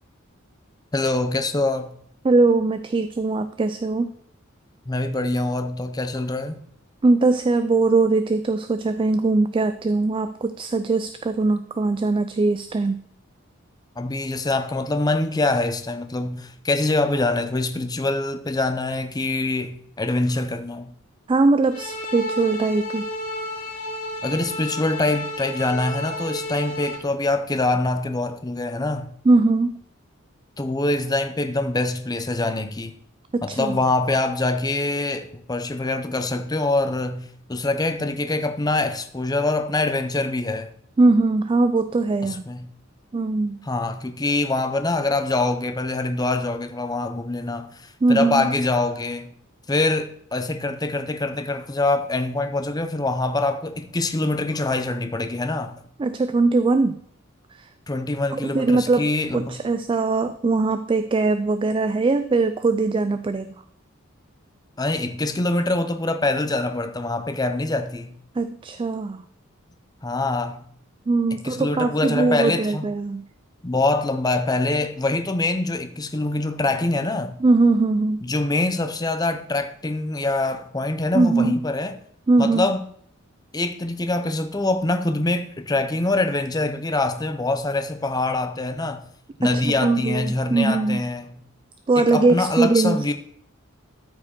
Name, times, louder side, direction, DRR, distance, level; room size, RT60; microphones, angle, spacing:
voice 1, 0.9-1.9 4.9-6.6 14.0-20.9 24.2-29.1 30.6-32.9 33.4-40.7 42.2-42.7 43.6-49.3 49.7-55.8 57.9-59.6 64.8-68.2 70.0-70.6 71.3-72.9 73.6-77.4 78.2-82.0 82.4-82.8 83.5-89.0 89.4-91.4 92.0-93.1, left 2 dB, 20° left, 0.6 m, -24 dB
voice 2, 2.2-4.1 7.0-13.0 21.3-23.1 29.3-29.8 33.3-33.8 41.0-42.4 43.1-43.6 48.0-48.5 56.0-57.0 57.6-57.7 58.3-59.1 59.3-63.5 68.4-69.2 71.1-73.2 77.4-78.2 81.1-81.5 82.3-82.7 89.5-91.0 91.9-93.0, right 3 dB, 25° right, 0.3 m, -21 dB
sound 1, 21.7-27.0, left 1 dB, 80° left, 2.5 m, -31 dB
13.0 x 4.9 x 4.3 m
head